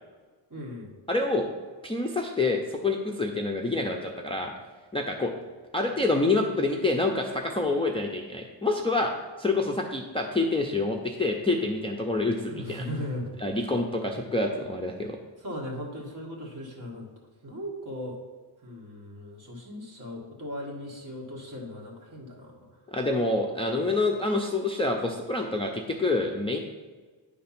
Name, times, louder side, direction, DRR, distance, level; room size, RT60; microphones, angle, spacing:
voice 1, 0.5-1.0 12.4-13.3 15.4-17.1 17.4-18.2 18.6-22.8, left 1 dB, 40° right, -2 dB, 1.7 m, -38 dB
voice 2, 1.1-1.5 1.8-4.5 4.9-5.3 5.7-12.8 13.4-15.2 22.9-26.6, left 2 dB, 15° left, 1 dB, 0.4 m, -27 dB
9.6 x 3.4 x 5.8 m, 1.4 s
wide cardioid pair, 160°, 46 cm